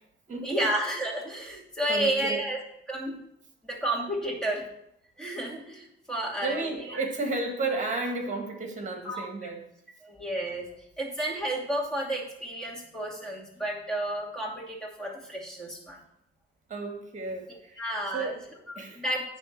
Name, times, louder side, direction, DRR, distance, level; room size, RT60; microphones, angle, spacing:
voice 1, 0.4-2.6 2.9-3.2 3.6-4.6 5.2-6.6 6.9-7.0 9.0-9.2 10.0-10.7 11.0-16.0 17.8-18.3 19.0-19.2, right 1 dB, 5° left, -3 dB, 2.5 m, -31 dB
voice 2, 1.9-2.4 6.4-9.7 16.7-19.0, right 3 dB, 40° right, 3 dB, 2.0 m, -33 dB
9.7 x 3.4 x 6.0 m, 0.76 s
cardioid pair, 90°, 20 cm